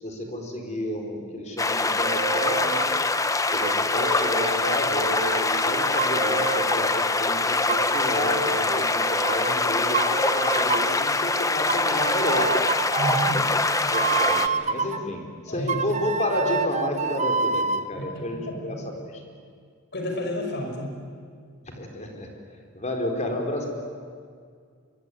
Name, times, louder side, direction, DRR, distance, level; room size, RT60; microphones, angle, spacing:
voice 1, 0.0-2.8 3.5-12.5 13.9-19.2 21.6-22.3 22.7-23.7, left 1 dB, 35° left, 2 dB, 4.5 m, -31 dB
sound 1, 1.6-14.5, left 3 dB, 15° left, 0.9 m, -24 dB
sound 2, 2.0-3.0 3.6-7.0 7.7-9.6 9.9-11.0 11.7-15.0 15.7-17.9, right 4 dB, 35° right, 1.0 m, -28 dB
voice 2, 13.0-13.4 15.5-15.9 18.0-18.8 19.9-21.0, equal, 50° left, 2 dB, 5.8 m, -31 dB
25.0 x 23.5 x 9.9 m, 2.1 s
head